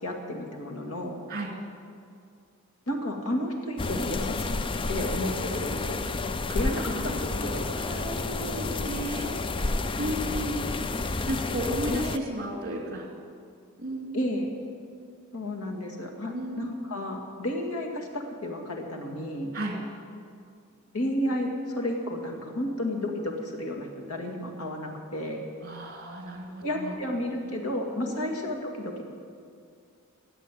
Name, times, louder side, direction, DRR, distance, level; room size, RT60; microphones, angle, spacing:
voice 1, 0.0-1.2 2.9-4.6 4.9-6.0 6.5-7.7 11.9-12.0 14.1-14.5 15.3-19.5 20.9-25.4 26.6-29.0, left 1 dB, 80° left, 2 dB, 2.2 m, -32 dB
sound 1, 3.8-12.2, left 3 dB, 25° left, 0.4 m, -30 dB
voice 2, 6.5-9.3 9.6-13.1 13.8-14.2 16.3-16.7 19.5-19.8 25.6-27.0, right 1 dB, 45° right, 0 dB, 2.9 m, -34 dB
15.0 x 8.3 x 9.2 m, 2.3 s
head